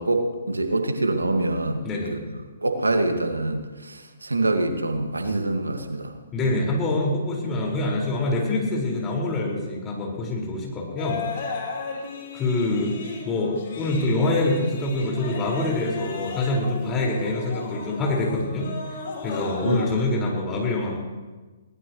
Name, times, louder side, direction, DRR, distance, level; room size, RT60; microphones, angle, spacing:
voice 1, 0.0-1.9 2.6-6.1 19.7-19.9, right 2 dB, 90° right, 5 dB, 2.0 m, -25 dB
voice 2, 1.8-2.2 6.3-11.6 12.3-18.7 19.2-21.0, left 2 dB, 20° left, -2 dB, 5.3 m, -25 dB
sound 1, 11.0-20.0, left 4 dB, 55° left, 4.3 m, -35 dB
22.0 x 18.5 x 3.2 m, 1.3 s
figure-of-eight pair, 130°, 0 cm